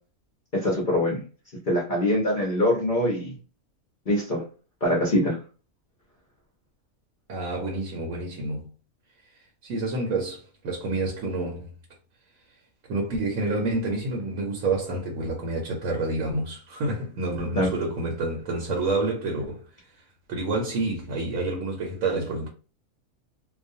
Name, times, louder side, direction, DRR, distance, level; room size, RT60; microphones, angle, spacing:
voice 1, 0.5-1.2 1.7-3.3 4.1-4.4 4.8-5.4 17.6-17.7, left 1 dB, 45° left, 0.7 m, -23 dB
voice 2, 7.3-8.7 9.6-11.8 12.9-19.9 20.3-22.5, right 2 dB, 70° right, 1.0 m, -28 dB
2.4 x 2.2 x 2.6 m
omnidirectional pair, 1.5 m